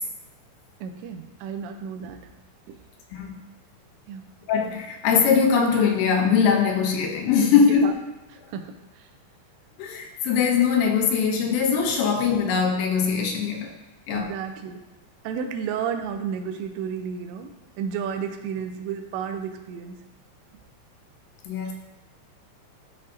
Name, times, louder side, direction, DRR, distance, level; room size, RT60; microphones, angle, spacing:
voice 1, 0.8-2.3 2.7-2.8 4.1-4.2 7.8-7.9 8.5-9.1 14.1-14.8 15.2-20.0, right 7 dB, 85° right, 5 dB, 2.9 m, -32 dB
voice 2, 3.1-3.4 4.5-7.9 9.8-13.7 14.1-14.4 21.5-21.7, left 6 dB, 75° left, 2 dB, 2.8 m, -21 dB
13.5 x 5.4 x 2.7 m, 1.0 s
omnidirectional pair, 5.1 m